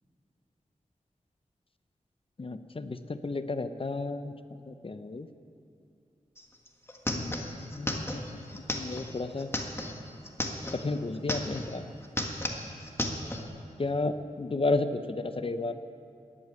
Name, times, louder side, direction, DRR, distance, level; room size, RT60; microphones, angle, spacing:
voice 1, 2.4-4.3 4.7-5.3 7.1-8.4 8.7-9.5 10.7-11.8 13.8-15.8, left 3 dB, 45° left, 10 dB, 0.7 m, -32 dB
sound 1, 6.4-6.5 6.7-10.8 11.2-11.8 12.0-13.4, left 1 dB, 20° left, 1.6 m, -34 dB
14.0 x 11.0 x 9.5 m, 2.5 s
wide cardioid pair, 85°, 13 cm